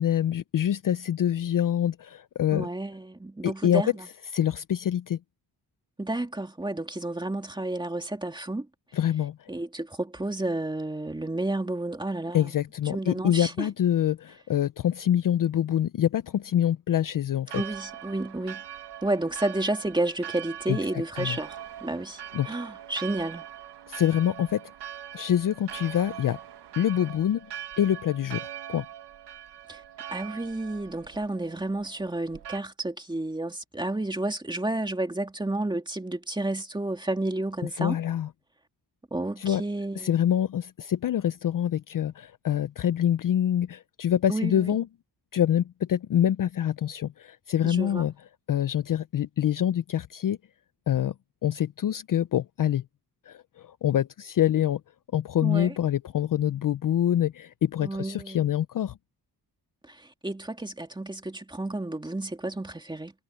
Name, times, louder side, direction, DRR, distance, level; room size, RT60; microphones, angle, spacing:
voice 1, 0.0-2.7 3.4-3.8 4.3-5.2 8.9-9.5 12.3-17.6 20.7-20.8 21.2-21.4 22.3-22.5 23.9-24.6 25.1-26.4 26.8-27.5 27.8-28.8 37.8-38.3 39.4-39.6 40.0-44.9 45.3-48.1 48.5-50.4 50.9-51.1 51.4-52.8 53.3-54.8 55.1-59.0, left 10 dB, 55° left, 0.5 m, -25 dB
voice 2, 2.5-4.1 6.0-8.7 9.5-12.5 12.9-13.7 17.5-18.6 19.0-23.4 29.7-29.8 30.1-38.0 39.1-40.1 44.3-44.8 47.6-48.1 55.4-55.7 57.8-58.4 59.8-63.1, right 2 dB, 10° right, 2.4 m, -31 dB
Church bell, 17.5-32.6, right 10 dB, 85° right, 1.1 m, -42 dB
wide cardioid pair, 155°, 40 cm